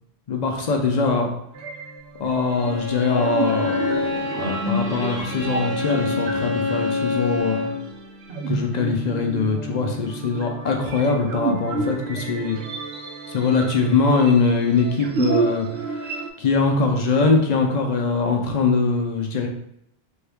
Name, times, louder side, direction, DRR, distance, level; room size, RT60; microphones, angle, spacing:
voice 1, 0.3-1.4 2.2-4.1 4.4-7.7 8.5-12.6 13.3-19.5, left 4 dB, 50° left, 1 dB, 0.6 m, -22 dB
sound 1, 1.5-16.3, right 4 dB, 85° right, 0.9 m, -30 dB
Bowed string instrument, 2.5-7.8, left 4 dB, 30° left, 0.8 m, -27 dB
3.5 x 2.7 x 3.4 m, 0.74 s
omnidirectional pair, 1.1 m